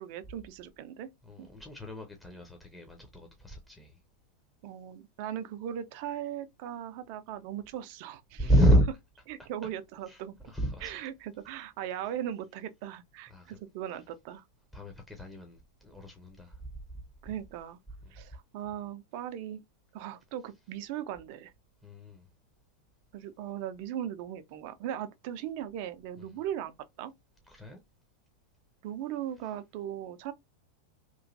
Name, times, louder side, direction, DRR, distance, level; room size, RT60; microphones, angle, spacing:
voice 1, 0.0-1.1 1.4-1.5 4.6-8.5 9.3-10.4 10.8-14.4 17.2-17.8 18.1-19.6 19.9-21.5 23.1-27.1 28.8-30.3, right 10 dB, 45° right, 0.4 m, -38 dB
voice 2, 1.2-4.0 8.4-8.9 10.1-11.0 13.3-13.6 14.7-16.6 21.8-22.2 26.2-26.4 27.5-27.8, equal, 5° left, 0.6 m, -29 dB
3.0 x 2.5 x 2.5 m
figure-of-eight pair, 90°, 0 cm